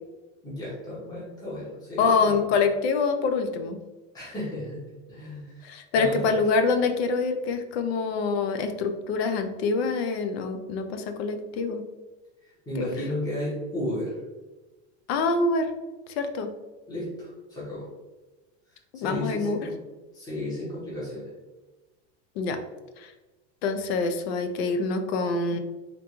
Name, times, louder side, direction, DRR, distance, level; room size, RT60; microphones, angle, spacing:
voice 1, 0.4-2.5 4.1-6.4 12.4-14.1 16.9-17.9 18.9-19.8 20.1-21.3, left 1 dB, 10° left, -9 dB, 1.2 m, -34 dB
voice 2, 2.0-3.8 5.6-11.8 12.8-12.9 15.1-15.7 16.2-16.5 18.9-19.6 22.4-22.6 23.6-25.6, left 4 dB, 55° left, 7 dB, 0.6 m, -25 dB
3.6 x 3.6 x 3.0 m, 1.2 s
supercardioid pair, 170°, 37 cm